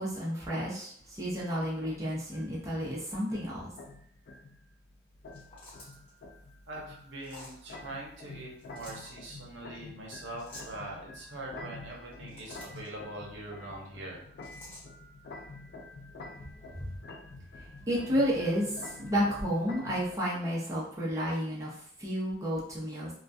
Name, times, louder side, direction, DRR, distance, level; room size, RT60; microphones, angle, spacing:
voice 1, 0.0-3.7 17.9-23.1, equal, 15° right, -7 dB, 0.6 m, -31 dB
sound 1, 1.0-20.2, left 2 dB, 55° left, 0.3 m, -48 dB
sound 2, 5.3-6.1 7.2-7.6 8.6-9.1 10.4-10.8 12.0-12.9 14.4-14.8, left 1 dB, 30° left, 1.1 m, -49 dB
voice 2, 6.7-14.2, right 1 dB, 85° right, -2 dB, 0.7 m, -43 dB
2.2 x 2.2 x 2.6 m, 0.63 s
head